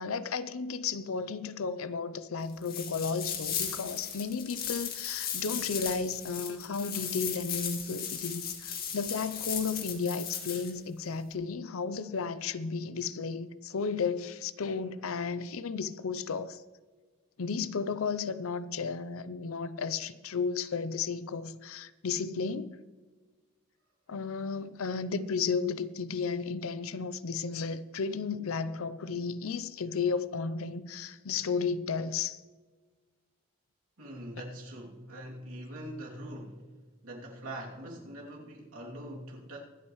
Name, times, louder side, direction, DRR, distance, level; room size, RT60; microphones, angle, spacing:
voice 1, 0.0-16.6 17.4-22.8 24.1-32.4, left 5 dB, 75° left, 0.6 m, -33 dB
sound 1, 2.6-10.7, left 8 dB, 45° left, 1.9 m, -36 dB
voice 2, 34.0-36.7 37.0-39.6, right 1 dB, 80° right, 2.8 m, -43 dB
24.5 x 8.7 x 3.2 m
head